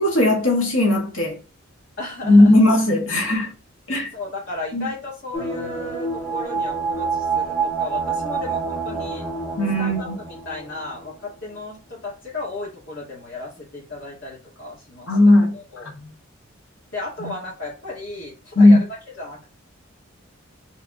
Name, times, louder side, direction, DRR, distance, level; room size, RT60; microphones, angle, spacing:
voice 1, 0.0-1.4 2.2-3.5 3.9-4.1 4.7-4.9 9.6-10.1 15.1-15.5 17.2-17.3 18.5-18.8, left 1 dB, 80° left, 1.6 m, -16 dB
voice 2, 2.0-2.5 4.1-9.3 9.8-15.2 15.5-15.9 16.9-18.8 19.2-19.5, left 3 dB, 55° left, 1.7 m, -34 dB
sound 1, 5.3-11.3 11.6-11.7, right 4 dB, 10° left, 1.2 m, -27 dB
4.6 x 3.3 x 2.3 m
head